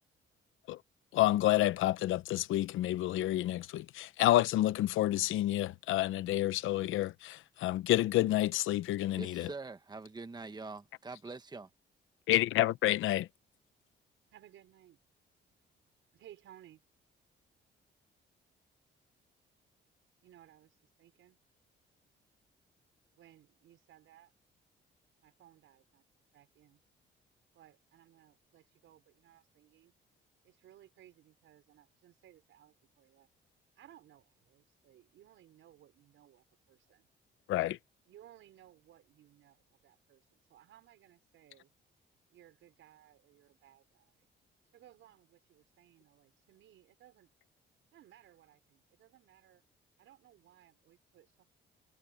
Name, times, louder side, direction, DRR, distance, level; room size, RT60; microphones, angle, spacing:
voice 1, 1.1-9.5 12.3-13.3 37.5-37.8, left 15 dB, 85° left, 0.9 m, -29 dB
voice 2, 9.1-11.7, right 3 dB, 20° right, 1.4 m, -44 dB
voice 3, 14.3-15.0 16.1-16.8 20.2-21.4 23.2-24.3 25.2-26.0 26.3-26.8 27.5-29.9 30.4-33.3 33.8-37.1 38.1-41.7 42.3-44.3 44.7-47.3 47.9-49.6 50.0-51.5, right 12 dB, 80° right, 5.5 m, -61 dB
cardioid pair, 90°, 20 cm